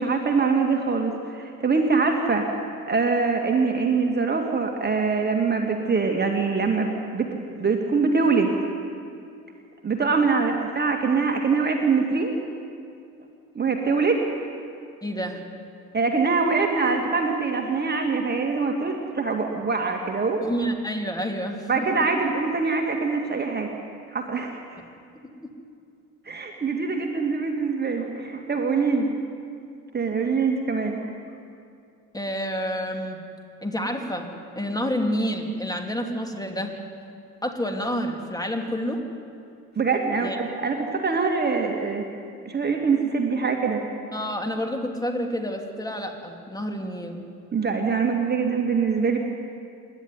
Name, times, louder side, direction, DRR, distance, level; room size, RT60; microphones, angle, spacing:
voice 1, 0.0-2.5 2.9-8.5 9.8-12.3 13.5-14.2 15.9-20.4 21.7-23.7 24.1-24.6 26.3-29.1 29.9-31.0 39.8-42.0 42.5-43.8 47.5-49.2, right 4 dB, 20° right, 3 dB, 2.2 m, -24 dB
voice 2, 15.0-15.4 20.4-21.8 25.4-25.5 32.1-33.2 33.6-34.3 34.5-36.7 37.4-39.0 40.2-40.4 44.1-47.2, equal, 10° left, 3 dB, 2.9 m, -28 dB
27.0 x 12.0 x 9.6 m, 2.4 s
figure-of-eight pair, 60°, 46 cm